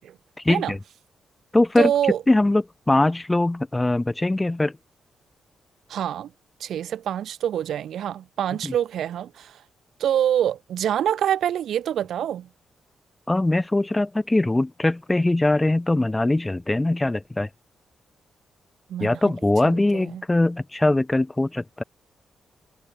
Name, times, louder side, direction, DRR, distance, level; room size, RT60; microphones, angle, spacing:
voice 1, 0.4-0.8 1.5-1.9 2.3-4.8 8.6-8.7 13.3-17.5 19.0-21.8, left 2 dB, 15° left, 5.1 m, -21 dB
voice 2, 1.8-2.2 5.9-6.3 6.6-9.6 10.0-12.5 18.9-19.3 19.6-20.2, right 10 dB, 75° right, 7.2 m, -26 dB
cardioid pair, 125°, 0 cm